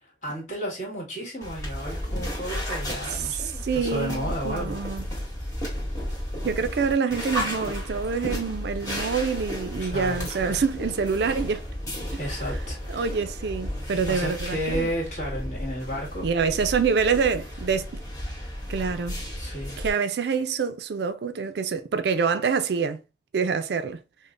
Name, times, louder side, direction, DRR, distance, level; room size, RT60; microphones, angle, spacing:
voice 1, 0.0-4.8 9.8-10.6 12.2-13.1 14.1-16.3 19.4-19.8, equal, 40° left, 1.7 m, -33 dB
sound 1, 1.4-19.9, equal, 20° left, 1.7 m, -33 dB
voice 2, 3.1-5.0 6.4-11.6 12.9-14.9 16.2-17.9 18.7-19.2 19.8-23.0 23.3-24.0, right 5 dB, 65° right, 0.4 m, -26 dB
5.1 x 2.1 x 2.4 m
head